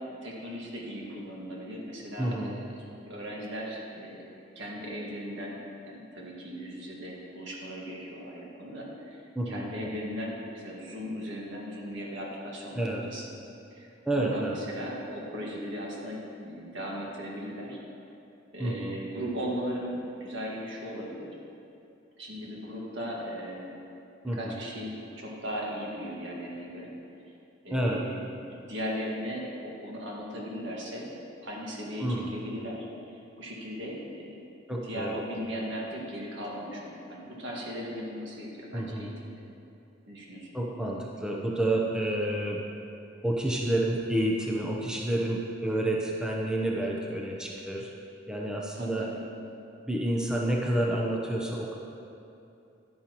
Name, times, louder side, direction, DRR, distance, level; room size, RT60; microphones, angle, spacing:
voice 1, 0.1-2.6 3.0-4.2 4.6-5.6 5.9-13.2 13.7-13.9 14.2-17.8 18.5-21.3 22.2-23.7 24.3-26.9 27.6-28.2 28.5-31.1 31.4-34.0 34.7-39.3 40.1-40.5 48.8-49.2, equal, 70° right, -3 dB, 1.8 m, -37 dB
voice 2, 2.2-2.6 9.4-9.9 12.7-13.0 14.1-14.5 18.6-19.0 24.2-24.6 27.7-28.0 32.0-32.3 34.7-35.2 38.7-39.1 40.5-42.6 43.2-47.9 48.3-49.1 49.9-51.8, right 1 dB, 5° right, -3 dB, 0.7 m, -29 dB
11.5 x 9.1 x 3.0 m, 2.7 s
head